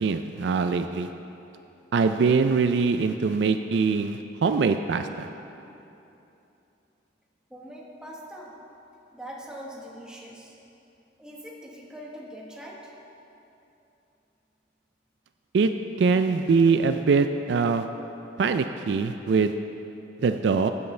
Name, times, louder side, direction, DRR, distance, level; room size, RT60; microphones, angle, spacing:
voice 1, 0.0-1.1 1.9-5.3 15.5-15.7 16.0-17.8 18.4-19.6 20.2-20.7, right 5 dB, 65° right, 8 dB, 0.3 m, -23 dB
voice 2, 7.5-8.5 9.1-10.6 11.2-12.9, equal, 5° right, -4 dB, 1.3 m, -42 dB
16.5 x 7.9 x 3.3 m, 2.8 s
head